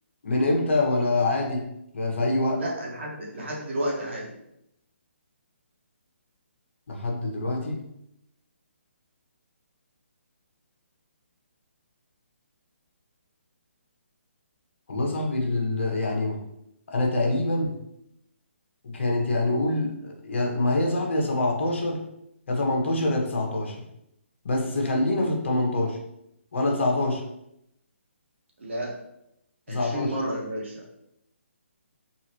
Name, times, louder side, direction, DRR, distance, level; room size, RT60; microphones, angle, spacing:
voice 1, 0.2-1.7 1.9-2.6 6.9-7.8 14.9-16.4 16.9-17.7 18.8-22.0 22.5-23.8 24.4-26.0 26.5-27.2 29.7-30.1, left 2 dB, 60° left, 0 dB, 1.0 m, -25 dB
voice 2, 2.6-4.3 28.6-28.9 29.7-31.0, right 1 dB, 60° right, -2 dB, 1.2 m, -31 dB
3.9 x 2.5 x 2.9 m, 0.80 s
hypercardioid pair, 160°, 7 cm